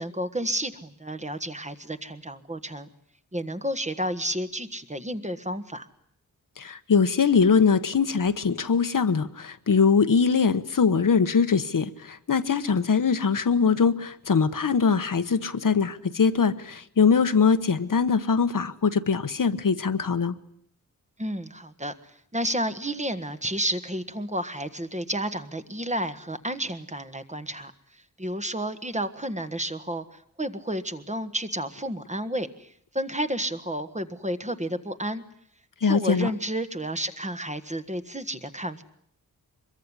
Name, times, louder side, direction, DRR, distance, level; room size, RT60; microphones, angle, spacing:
voice 1, 0.0-2.9 3.3-5.9 21.2-21.9 22.3-27.7 28.2-35.2 35.8-38.8, right 1 dB, 20° right, 9 dB, 1.6 m, -31 dB
voice 2, 6.6-20.3 35.8-36.3, left 5 dB, 60° left, 10 dB, 1.2 m, -22 dB
24.5 x 22.5 x 9.9 m, 0.67 s
wide cardioid pair, 120°, 37 cm